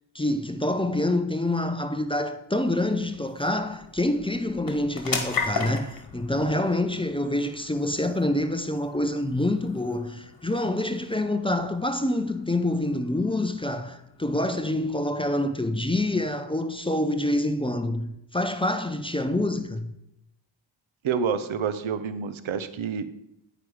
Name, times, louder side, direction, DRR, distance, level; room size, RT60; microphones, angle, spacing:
voice 1, 0.1-19.9, left 1 dB, 10° left, 0.4 m, -26 dB
sound 1, 1.7-16.5, left 5 dB, 45° left, 1.4 m, -39 dB
voice 2, 21.0-23.1, right 6 dB, 85° right, 0.7 m, -28 dB
9.5 x 4.9 x 4.7 m
wide cardioid pair, 90°, 47 cm